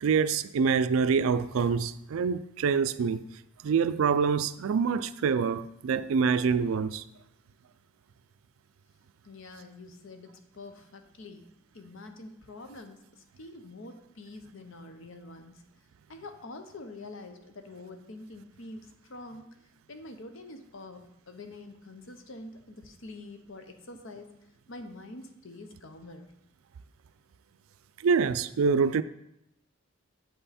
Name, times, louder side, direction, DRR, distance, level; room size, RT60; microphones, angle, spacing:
voice 1, 0.0-3.3 3.6-7.0 28.0-29.0, right 5 dB, 70° right, 0.3 m, -26 dB
voice 2, 9.2-11.5 11.7-13.0 13.4-15.6 16.1-19.5 19.9-24.3 24.7-26.3, left 2 dB, 65° left, 0.8 m, -46 dB
7.7 x 5.5 x 4.2 m
head